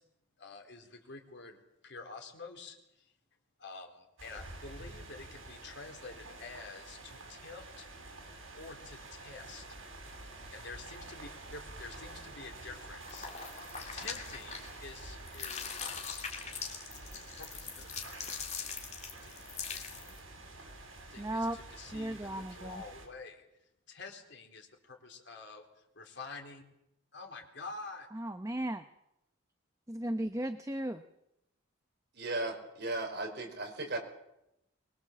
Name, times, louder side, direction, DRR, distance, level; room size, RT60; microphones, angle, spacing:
voice 1, 0.4-1.6 1.8-3.1 3.6-7.9 8.5-13.3 13.9-16.0 17.4-17.9 19.7-20.2 21.1-26.6 27.1-28.1, left 3 dB, 60° left, 3 dB, 3.9 m, -48 dB
sound 1, 4.2-23.1, right 2 dB, 75° right, 7.5 m, -49 dB
sound 2, 13.0-15.0 15.3-20.2, left 6 dB, 35° left, 2.9 m, -42 dB
voice 2, 21.2-21.6 21.9-22.8 28.1-28.9 29.9-31.0, right 1 dB, 15° right, 9 dB, 0.8 m, -35 dB
voice 3, 32.1-34.0, right 2 dB, 55° right, 3 dB, 5.0 m, -36 dB
23.5 x 22.0 x 7.4 m, 0.86 s
head